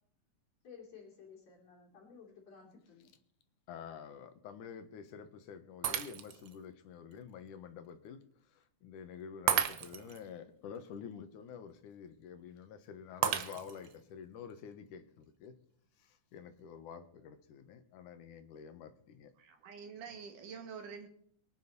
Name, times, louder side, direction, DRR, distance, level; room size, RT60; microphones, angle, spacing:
voice 1, 0.6-3.1, left 6 dB, 55° left, 3.9 m, -55 dB
voice 2, 3.7-8.2 8.5-15.5 16.0-19.3, left 7 dB, 80° left, 2.7 m, -49 dB
Shatter, 5.8-6.5 7.1-7.2 9.5-10.2 13.2-14.0, right 9 dB, 65° right, 1.4 m, -33 dB
voice 3, 19.4-21.1, right 6 dB, 90° right, 3.6 m, -47 dB
23.5 x 9.3 x 4.1 m
omnidirectional pair, 3.6 m